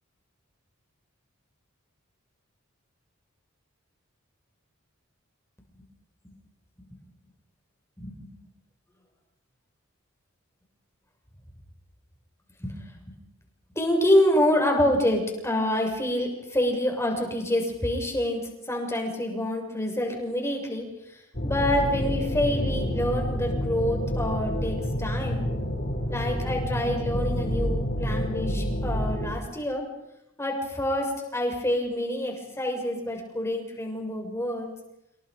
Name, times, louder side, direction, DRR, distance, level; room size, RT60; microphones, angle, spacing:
voice 1, 8.0-8.3 12.6-12.7 13.7-25.4 26.1-29.8 30.4-34.7, left 1 dB, 15° left, 2 dB, 6.6 m, -27 dB
sound 1, 21.3-29.3, equal, 45° left, 7.2 m, -28 dB
28.5 x 28.0 x 5.3 m, 0.85 s
head